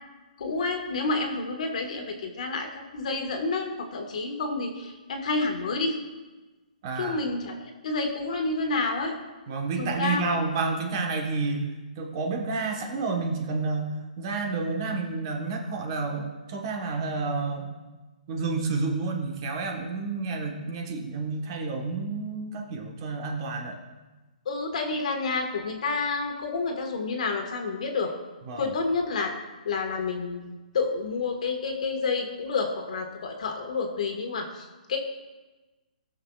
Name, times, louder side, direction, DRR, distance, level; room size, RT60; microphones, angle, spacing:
voice 1, 0.4-2.7 2.9-6.0 7.0-7.6 7.8-9.1 9.7-10.2 24.4-28.1 28.6-29.3 29.6-35.0, left 3 dB, 55° left, 3 dB, 1.5 m, -29 dB
voice 2, 6.8-7.2 9.5-11.7 12.0-17.7 18.3-23.8 28.4-28.7, right 3 dB, 30° right, 1 dB, 1.2 m, -30 dB
18.5 x 6.4 x 2.4 m, 1.2 s
hypercardioid pair, 165°, 5 cm